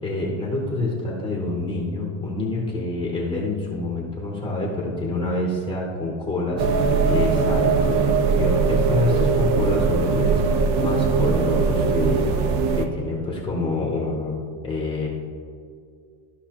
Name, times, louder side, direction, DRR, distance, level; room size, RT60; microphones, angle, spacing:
voice 1, 0.0-12.4 12.7-14.3 14.6-15.1, left 2 dB, 15° left, -3 dB, 0.8 m, -27 dB
sound 1, 6.6-12.9, right 5 dB, 60° right, 0.8 m, -20 dB
13.5 x 5.5 x 2.9 m, 2.3 s
cardioid pair, 170°, 46 cm